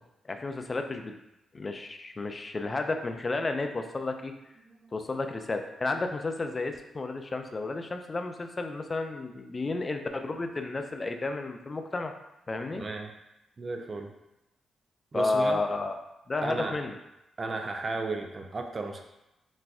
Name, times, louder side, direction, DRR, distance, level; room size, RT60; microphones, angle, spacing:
voice 1, 0.2-1.1 1.5-4.3 4.9-12.1 12.5-12.8 15.1-16.0 16.3-16.9, left 3 dB, 35° left, 6 dB, 0.4 m, -32 dB
voice 2, 4.6-4.9 12.7-13.1 13.6-14.1 15.1-15.6 16.4-16.8 17.4-19.0, right 3 dB, 40° right, 4 dB, 0.4 m, -34 dB
4.1 x 2.3 x 2.4 m, 0.91 s
cardioid pair, 70°, 0 cm